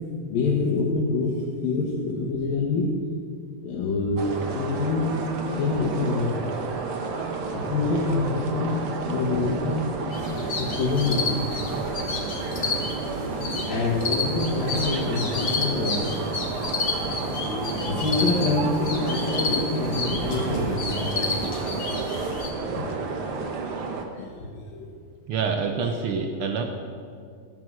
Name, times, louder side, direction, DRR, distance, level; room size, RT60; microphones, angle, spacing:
voice 1, 0.3-2.9 3.6-5.1 5.6-6.5 7.5-9.9 10.6-11.5 13.7-16.3 17.9-21.4 22.8-22.9 24.1-24.9 25.8-26.0, left 3 dB, 90° left, -4 dB, 3.6 m, -26 dB
sound 1, 4.2-24.0, right 4 dB, 55° right, 1.7 m, -31 dB
sound 2, 10.1-22.5, left 3 dB, 45° left, 1.6 m, -30 dB
voice 2, 21.7-22.3 23.4-23.5 25.3-26.6, right 5 dB, 90° right, 5 dB, 1.2 m, -28 dB
16.5 x 12.5 x 6.4 m, 2.2 s
omnidirectional pair, 3.9 m